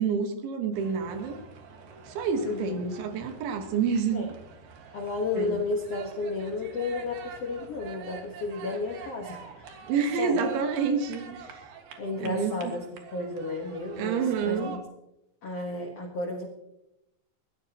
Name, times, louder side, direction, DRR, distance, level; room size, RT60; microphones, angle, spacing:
voice 1, 0.0-1.4 2.1-4.3 5.4-5.6 9.9-11.7 12.2-12.7 14.0-14.7, right 6 dB, 75° right, 6 dB, 3.9 m, -28 dB
sound 1, 0.7-14.8, right 6 dB, 60° right, 3.4 m, -46 dB
voice 2, 2.4-3.0 4.1-4.3 4.9-10.4 12.0-14.8 15.4-16.5, left 3 dB, 70° left, 2 dB, 1.4 m, -33 dB
22.0 x 17.0 x 3.0 m, 0.88 s
omnidirectional pair, 5.4 m